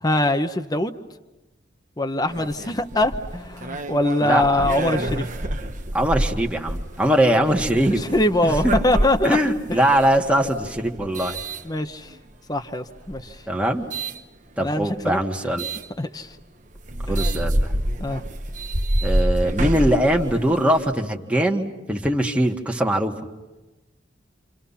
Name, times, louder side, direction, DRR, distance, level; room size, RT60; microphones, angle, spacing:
voice 1, 0.0-1.0 2.0-5.2 8.0-9.4 9.7-9.8 11.6-12.1 12.5-13.4 14.6-15.2 16.0-16.4 18.0-18.2, left 1 dB, 20° left, 7 dB, 0.9 m, -23 dB
sound 1, 2.3-12.3 13.0-14.2 15.6-15.9 16.4-16.5 16.8-20.9, right 1 dB, 40° right, 1.1 m, -27 dB
voice 2, 4.2-4.7 5.9-8.0 8.4-8.8 9.2-11.4 13.5-13.9 14.6-15.7 17.1-17.7 19.0-23.1, right 1 dB, 5° right, 1 dB, 1.8 m, -21 dB
29.0 x 28.0 x 5.8 m, 1.1 s
head